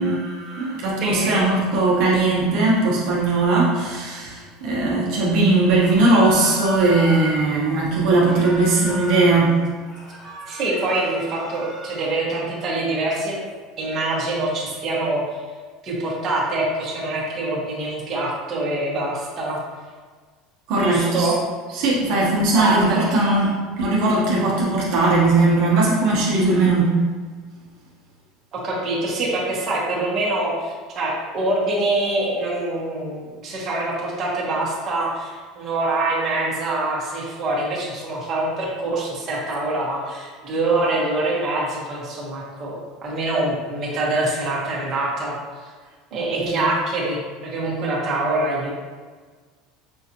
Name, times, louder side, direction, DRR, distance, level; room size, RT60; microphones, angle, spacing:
voice 1, 0.0-9.6 20.7-21.3 21.7-26.9 46.1-46.6, right 2 dB, 60° right, -5 dB, 0.9 m, -19 dB
voice 2, 1.0-1.4 10.5-13.4 13.8-15.4 15.8-19.6 20.8-21.4 22.5-22.8 23.1-23.2 28.5-45.4 46.1-47.2 47.4-48.7, right 2 dB, 30° right, -5 dB, 1.0 m, -25 dB
sound 1, 5.7-7.4 8.1-9.4 9.8-12.1, equal, 10° left, 1.3 m, -35 dB
5.5 x 2.5 x 2.8 m, 1.5 s
cardioid pair, 155°, 0 cm